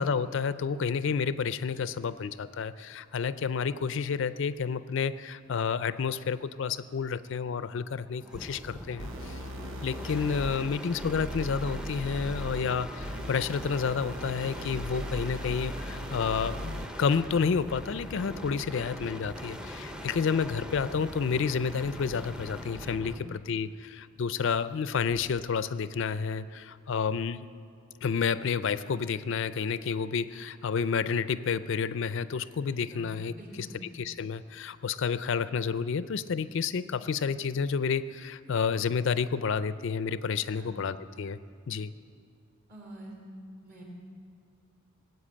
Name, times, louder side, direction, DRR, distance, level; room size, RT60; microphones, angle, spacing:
voice 1, 0.0-9.4 9.8-27.5 28.0-33.7 33.9-41.4 41.7-41.9, left 6 dB, 60° left, 15 dB, 0.4 m, -30 dB
sound 1, 8.2-23.3 25.0-25.5, equal, 5° right, 0.6 m, -41 dB
sound 2, 9.0-17.0, equal, 70° right, 1.0 m, -39 dB
voice 2, 33.4-33.8 40.5-40.7 42.7-43.1 43.6-43.8, right 1 dB, 45° right, -1 dB, 3.8 m, -46 dB
19.5 x 8.0 x 8.5 m, 2.3 s
head